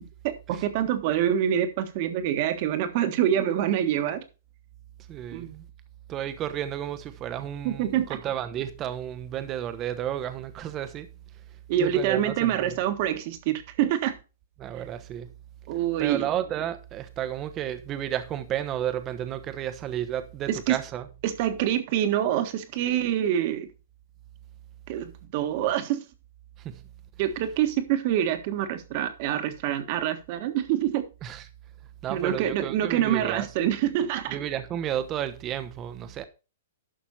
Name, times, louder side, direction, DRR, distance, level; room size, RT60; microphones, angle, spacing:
voice 1, 0.2-4.2 5.3-5.5 7.6-8.2 11.7-14.2 15.7-16.3 20.5-20.8 21.2-23.7 24.9-26.0 27.2-31.0 32.1-34.4, right 10 dB, 45° right, 1.5 m, -26 dB
voice 2, 5.1-5.7 6.1-11.1 11.8-12.8 14.6-15.3 16.0-21.1 26.6-26.8 31.2-31.5 32.0-33.5 34.3-36.3, right 10 dB, 25° right, 1.0 m, -32 dB
11.5 x 6.1 x 4.2 m
hypercardioid pair, 145°, 0 cm